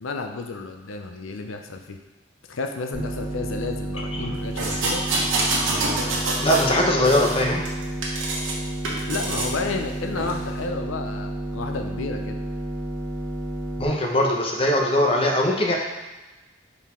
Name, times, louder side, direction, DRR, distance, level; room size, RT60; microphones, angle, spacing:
voice 1, 0.0-2.0 2.5-5.0 9.1-12.4, left 3 dB, 90° left, 5 dB, 0.6 m, -31 dB
sound 1, 2.9-13.9, right 1 dB, 65° right, 1.3 m, -31 dB
sound 2, 4.6-6.7 7.0-8.5 8.8-9.5 10.2-10.3, right 2 dB, 90° right, 1.2 m, -26 dB
voice 2, 6.4-7.6 13.8-15.8, left 1 dB, 30° left, 0 dB, 0.8 m, -21 dB
5.8 x 4.1 x 4.3 m, 1.1 s
head